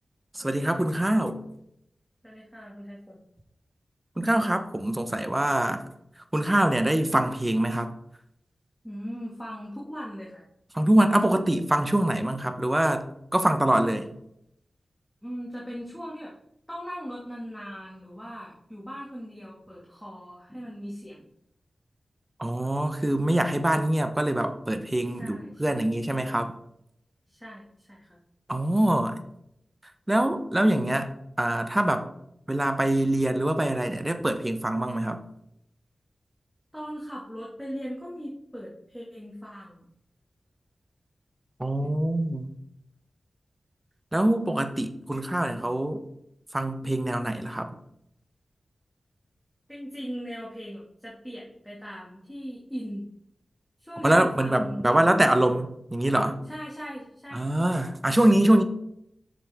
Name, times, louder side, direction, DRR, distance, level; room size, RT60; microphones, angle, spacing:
voice 1, 0.3-1.4 4.2-5.8 6.3-7.9 10.7-13.0 13.3-14.1 22.4-26.5 28.5-29.2 30.1-31.1 31.4-32.1 32.5-35.2 41.6-42.5 44.1-46.0 46.5-47.8 54.0-56.4 57.3-58.6, right 1 dB, 20° right, 8 dB, 0.9 m, -24 dB
voice 2, 2.2-3.2 8.8-10.4 15.2-16.3 16.7-21.2 25.1-25.8 27.3-28.2 36.7-39.8 41.8-41.9 49.7-53.1 53.8-55.2 56.4-57.8, equal, ahead, -5 dB, 2.0 m, -39 dB
7.6 x 6.6 x 3.6 m, 0.78 s
cardioid pair, 50°, 0 cm